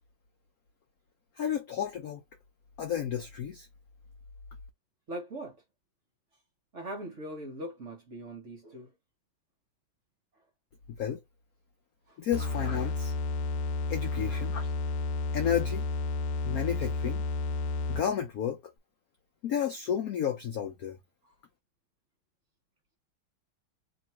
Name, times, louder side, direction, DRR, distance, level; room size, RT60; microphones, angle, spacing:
voice 1, 1.4-2.2 2.8-3.7 11.0-11.2 12.2-13.1 13.9-14.7 15.3-15.8 16.4-17.2 17.9-18.6 19.4-21.0, left 9 dB, 70° left, 0.8 m, -32 dB
voice 2, 5.1-5.6 6.7-8.9 12.1-12.2, right 1 dB, 45° right, 1.2 m, -40 dB
sound 1, 12.3-18.2, left 3 dB, 85° left, 1.5 m, -31 dB
3.1 x 3.0 x 4.3 m
omnidirectional pair, 2.3 m